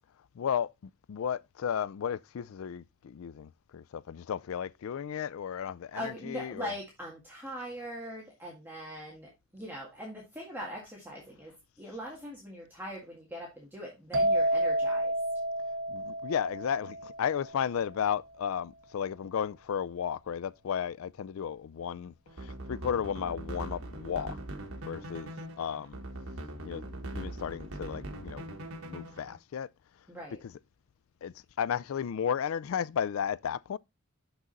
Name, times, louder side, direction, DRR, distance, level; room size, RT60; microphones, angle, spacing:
voice 1, 0.4-6.7 15.9-24.4 24.8-25.3 25.6-26.0 26.6-28.5 28.9-29.7 31.2-33.8, left 8 dB, 75° left, 0.3 m, -34 dB
voice 2, 5.9-15.1 30.1-30.4, equal, 10° right, 1.8 m, -41 dB
sound 1, 14.1-17.8, right 1 dB, 55° right, 1.4 m, -30 dB
sound 2, 22.3-29.4, right 1 dB, 85° right, 1.4 m, -41 dB
6.4 x 6.1 x 3.9 m
head